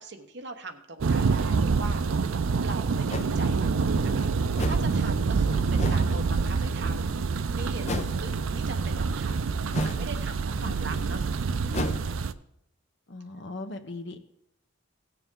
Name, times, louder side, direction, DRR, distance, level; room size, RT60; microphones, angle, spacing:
voice 1, 0.0-2.2 2.6-9.5 9.8-11.2 11.6-12.0, right 3 dB, 55° right, 6 dB, 1.0 m, -41 dB
Thunder, 1.0-12.3, right 4 dB, 80° right, 0.5 m, -26 dB
sound 1, 2.1-2.2 3.1-3.3 4.5-4.9 5.8-6.1 7.8-8.2 9.7-10.1 11.7-12.0, left 2 dB, 35° left, 0.7 m, -32 dB
voice 2, 5.5-6.4 10.6-10.8 13.1-14.2, left 2 dB, 55° left, 7 dB, 1.0 m, -40 dB
17.5 x 6.8 x 3.7 m, 0.79 s
head